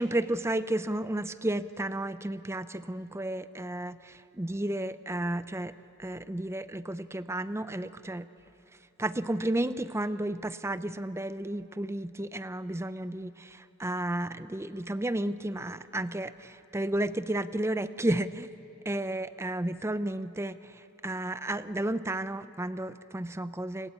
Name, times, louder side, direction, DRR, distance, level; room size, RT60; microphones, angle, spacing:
voice 1, 0.0-5.7 6.0-8.3 9.0-18.5 18.9-20.6 21.0-23.9, right 1 dB, 10° right, 13 dB, 0.5 m, -32 dB
30.0 x 21.0 x 8.5 m, 2.8 s
head